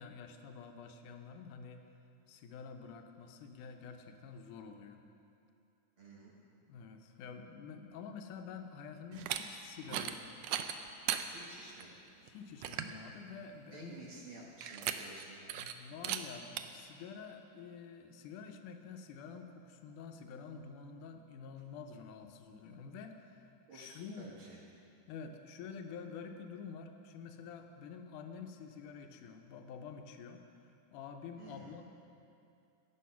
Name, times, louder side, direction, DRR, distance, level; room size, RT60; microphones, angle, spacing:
voice 1, 0.0-1.8 2.3-5.0 6.6-10.4 12.2-14.0 15.5-24.3 25.1-30.5 30.9-31.8, left 6 dB, 85° left, 6 dB, 2.3 m, -48 dB
voice 2, 6.0-6.3 11.3-12.0 13.7-15.6 23.7-24.6 31.4-31.7, right 2 dB, 55° right, -3 dB, 1.7 m, -52 dB
sound 1, 9.1-9.4 9.8-10.1 10.4-11.2 11.8-11.9 12.3-12.4 12.6-12.9 14.6-15.2 15.5-15.7 16.0-16.2 16.6-16.7, right 11 dB, 90° right, 1.4 m, -36 dB
15.0 x 8.6 x 5.7 m, 2.6 s
omnidirectional pair, 3.6 m